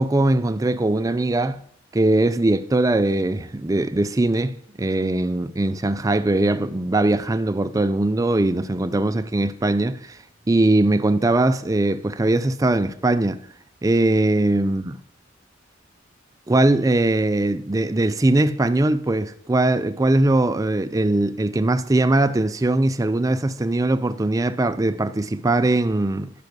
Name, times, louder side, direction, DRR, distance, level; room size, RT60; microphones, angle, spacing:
voice 1, 0.0-1.6 1.9-10.2 10.5-13.4 13.8-15.0 16.5-26.3, right 2 dB, 15° right, 0.4 m, -20 dB
10.5 x 5.5 x 6.6 m
head